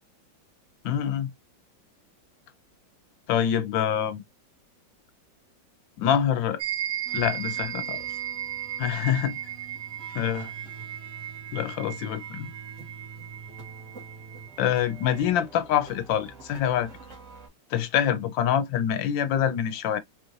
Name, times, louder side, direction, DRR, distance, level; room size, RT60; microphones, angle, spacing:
voice 1, 0.8-1.3 3.3-4.2 6.0-6.6 7.1-8.0 8.8-9.4 10.2-10.5 11.5-12.5 14.6-17.0 17.7-20.0, left 9 dB, 85° left, 1.4 m, -25 dB
sound 1, 6.6-15.3, right 12 dB, 65° right, 0.8 m, -36 dB
sound 2, 7.1-17.5, right 4 dB, 45° right, 1.9 m, -46 dB
4.0 x 3.1 x 2.4 m
omnidirectional pair, 2.0 m